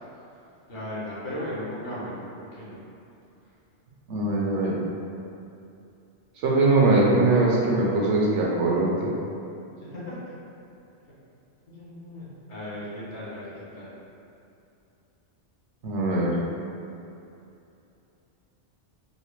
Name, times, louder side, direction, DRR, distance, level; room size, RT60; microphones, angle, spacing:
voice 1, 0.7-2.8 9.8-10.2 11.7-13.9, left 1 dB, 70° left, -9 dB, 1.3 m, -36 dB
voice 2, 4.1-4.8 6.4-9.1 15.8-16.3, right 2 dB, 80° right, -4 dB, 0.9 m, -21 dB
4.0 x 2.1 x 3.0 m, 2.7 s
omnidirectional pair, 1.2 m